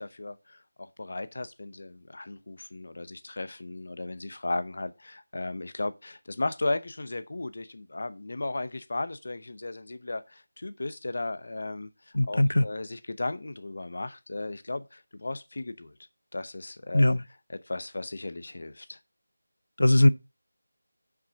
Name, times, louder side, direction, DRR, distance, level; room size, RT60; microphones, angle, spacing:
voice 1, 0.0-11.9 12.3-16.0 16.3-17.1 17.7-19.0, left 2 dB, 40° left, 0.8 m, -35 dB
voice 2, 12.1-12.7 16.9-17.2 19.8-20.1, left 1 dB, 75° left, 0.6 m, -20 dB
7.4 x 6.1 x 6.2 m
figure-of-eight pair, 180°, 0 cm